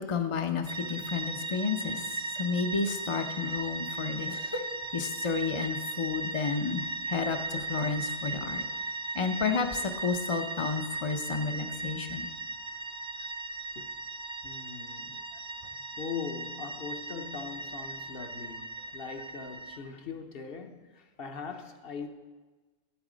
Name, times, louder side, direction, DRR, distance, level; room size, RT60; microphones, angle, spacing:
voice 1, 0.0-2.0 2.3-4.6 4.9-8.6 9.1-12.3, left 5 dB, 35° left, 0.5 m, -31 dB
sound 1, 0.7-19.8, right 3 dB, 50° right, 0.8 m, -37 dB
voice 2, 14.4-15.2 16.0-22.1, left 6 dB, 55° left, 0.9 m, -41 dB
11.5 x 8.1 x 5.0 m
omnidirectional pair, 1.3 m